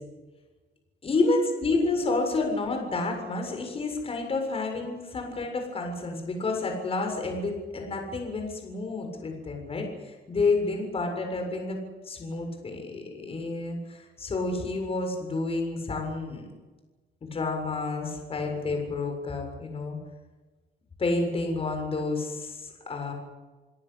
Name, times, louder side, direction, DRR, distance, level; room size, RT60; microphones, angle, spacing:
voice 1, 1.0-11.8 12.1-16.5 17.2-20.0 21.0-23.1, left 3 dB, 30° left, 3 dB, 7.3 m, -29 dB
29.0 x 18.0 x 8.3 m, 1.3 s
cardioid pair, 130°, 18 cm